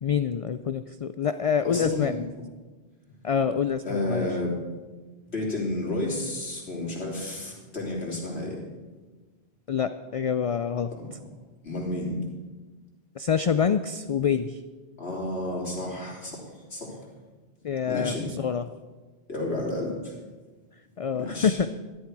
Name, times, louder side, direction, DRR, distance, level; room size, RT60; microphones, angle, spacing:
voice 1, 0.0-2.1 3.2-4.3 9.7-10.9 13.2-14.6 17.6-18.6 21.0-21.7, left 7 dB, 55° left, 11 dB, 0.4 m, -26 dB
voice 2, 1.6-2.2 3.8-4.6 5.3-8.6 11.0-11.1 11.6-12.2 15.0-17.0 17.9-18.2 19.3-20.1 21.1-21.6, left 1 dB, 90° left, -3 dB, 3.5 m, -31 dB
14.0 x 11.5 x 4.7 m, 1.3 s
omnidirectional pair, 1.1 m